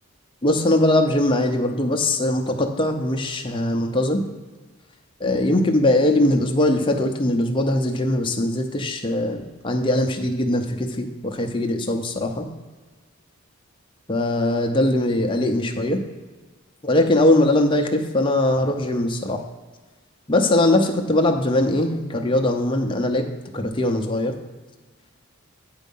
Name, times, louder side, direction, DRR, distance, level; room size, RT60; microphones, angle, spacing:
voice 1, 0.4-4.2 5.2-12.5 14.1-16.0 16.8-19.4 20.3-23.2 23.5-24.3, left 1 dB, 20° left, 3 dB, 0.6 m, -21 dB
8.3 x 4.6 x 5.5 m, 1.3 s
head